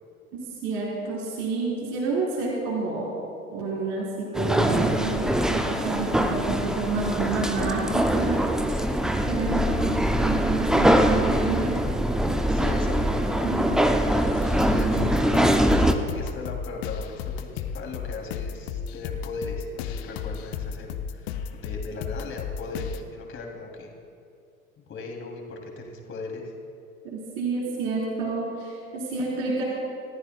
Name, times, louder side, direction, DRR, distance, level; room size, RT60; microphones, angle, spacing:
voice 1, 0.3-3.1 3.5-8.4 8.7-8.8 9.3-11.8 12.3-12.4 13.4-13.8 14.8-15.1 27.0-29.6, right 4 dB, 50° right, -4 dB, 3.9 m, -29 dB
sound 1, 4.3-15.9, right 1 dB, ahead, 0.5 m, -23 dB
voice 2, 12.5-15.8 16.1-23.9 24.8-26.5, left 3 dB, 30° left, 1 dB, 2.7 m, -38 dB
sound 2, 14.4-23.0, left 8 dB, 50° left, 0.9 m, -34 dB
29.0 x 14.5 x 2.2 m, 2.5 s
figure-of-eight pair, 80°, 42 cm